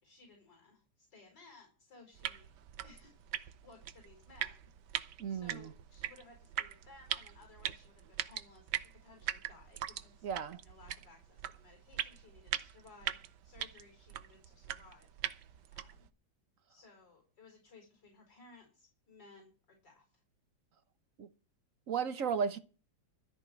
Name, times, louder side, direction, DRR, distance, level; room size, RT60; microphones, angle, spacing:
voice 1, 0.0-2.5 2.8-10.3 10.6-16.1 16.7-20.2, left 3 dB, 65° left, 5.3 m, -60 dB
sound 1, 2.1-16.1, right 11 dB, 70° right, 1.4 m, -42 dB
voice 2, 5.2-5.7 10.2-10.6 21.2-21.3 21.9-22.6, right 6 dB, 55° right, 1.1 m, -34 dB
13.5 x 6.1 x 8.9 m
omnidirectional pair, 2.0 m